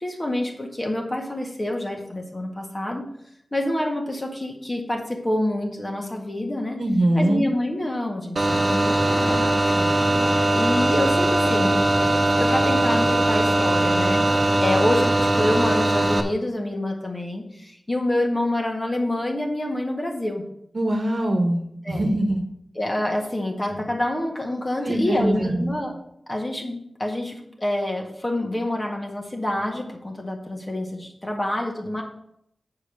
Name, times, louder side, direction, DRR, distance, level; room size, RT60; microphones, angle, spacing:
voice 1, 0.0-3.1 3.5-6.8 7.1-11.8 12.4-20.4 21.8-22.1 22.7-26.0 26.3-32.0, left 1 dB, 25° left, 1 dB, 1.7 m, -27 dB
voice 2, 6.8-7.4 20.7-22.4 24.8-25.8, right 1 dB, 65° right, 2 dB, 1.2 m, -22 dB
sound 1, 8.4-16.2, right 1 dB, 40° right, 1.0 m, -20 dB
7.3 x 5.0 x 7.1 m, 0.73 s
wide cardioid pair, 80°, 0 cm